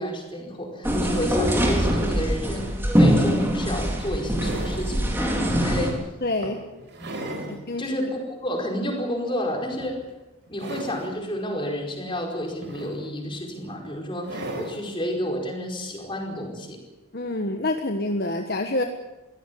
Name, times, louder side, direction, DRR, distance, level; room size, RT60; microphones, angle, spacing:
voice 1, 0.0-6.0 7.0-10.0 10.5-16.8, equal, 25° left, 1 dB, 4.9 m, -31 dB
sound 1, 0.8-5.9, equal, 10° right, 3.7 m, -23 dB
sound 2, 3.2-3.3 3.9-5.0 5.6-5.8 6.4-7.6 8.1-8.2 9.7-10.1 10.5-11.2 12.4-13.3 14.2-14.9 16.2-16.3, right 1 dB, 55° right, 4.2 m, -36 dB
voice 2, 6.2-6.6 7.5-7.9 17.1-18.8, left 2 dB, 45° left, 5 dB, 1.4 m, -27 dB
23.5 x 16.5 x 8.6 m, 1.1 s
head